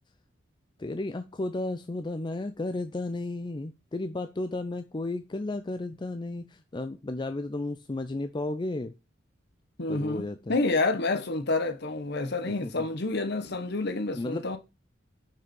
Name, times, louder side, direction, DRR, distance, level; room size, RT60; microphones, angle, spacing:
voice 1, 0.8-8.9 9.9-10.5 12.4-12.7 14.2-14.6, left 2 dB, 25° left, 0.4 m, -33 dB
voice 2, 9.8-14.6, left 3 dB, 55° left, 1.1 m, -29 dB
6.0 x 5.6 x 5.3 m
head